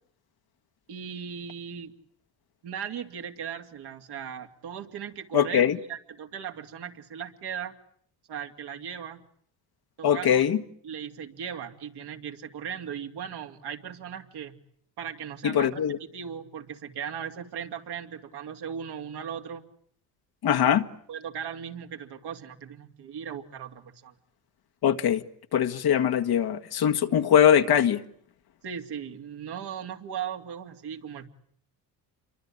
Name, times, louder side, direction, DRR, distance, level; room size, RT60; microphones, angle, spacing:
voice 1, 0.9-1.9 2.6-7.7 8.3-9.2 10.0-10.4 10.8-14.6 15.0-15.8 16.1-19.6 20.5-20.7 21.1-24.1 28.6-31.3, right 8 dB, 60° right, 2.9 m, -38 dB
voice 2, 5.3-5.8 10.0-10.6 15.4-16.0 20.4-20.9 24.8-25.2 25.5-28.0, left 9 dB, 55° left, 1.8 m, -22 dB
28.0 x 24.0 x 8.8 m
hypercardioid pair, 65°, 44 cm